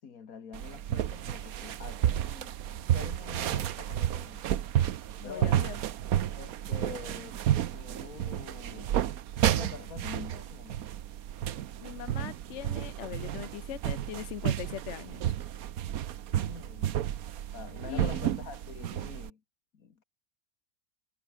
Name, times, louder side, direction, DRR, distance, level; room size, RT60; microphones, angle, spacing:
voice 1, 0.0-4.5 5.2-5.7 6.4-7.4 7.7-9.0 9.6-10.9 16.3-17.0 17.5-19.4 19.7-20.0, left 6 dB, 85° left, 2.1 m, -46 dB
sound 1, 0.5-19.3, right 11 dB, 90° right, 1.3 m, -31 dB
voice 2, 5.2-5.8 11.8-15.3 17.9-18.2, left 12 dB, 65° left, 0.9 m, -41 dB
omnidirectional pair, 1.5 m